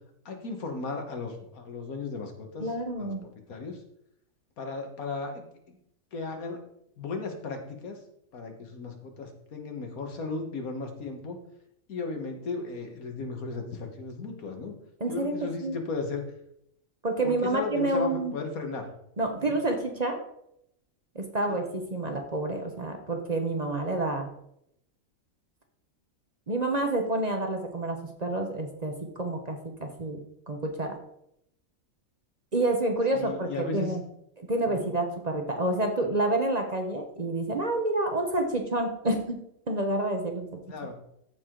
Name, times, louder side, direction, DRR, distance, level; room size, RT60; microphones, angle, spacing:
voice 1, 0.3-2.7 3.0-3.8 4.6-5.8 6.1-6.6 7.0-8.0 8.3-11.4 11.9-14.7 15.1-16.2 17.2-18.9 19.4-19.6 21.5-21.6 33.1-33.9 34.6-34.9 40.7-40.9, left 3 dB, 90° left, 4 dB, 1.8 m, -36 dB
voice 2, 2.6-3.3 15.0-15.3 15.6-15.7 17.0-18.3 19.2-20.2 21.1-24.3 26.5-30.9 32.5-34.0 34.4-39.4 39.7-40.6, right 2 dB, 35° right, 4 dB, 0.9 m, -28 dB
14.0 x 4.8 x 3.8 m, 0.76 s
omnidirectional pair, 1.5 m